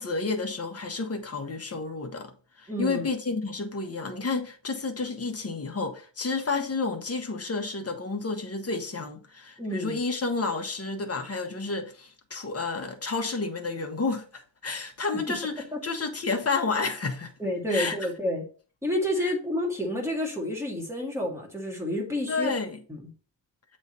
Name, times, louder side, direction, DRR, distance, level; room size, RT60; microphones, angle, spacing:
voice 1, 0.0-2.3 2.6-17.3 17.7-18.1 19.2-19.3 22.3-22.8, left 4 dB, 30° left, 1.0 m, -30 dB
voice 2, 2.7-3.1 9.6-10.0 15.7-15.8 17.4-18.4 18.8-22.5 22.9-23.0, left 1 dB, 5° right, 1.9 m, -29 dB
7.9 x 3.2 x 4.2 m
wide cardioid pair, 130°, 46 cm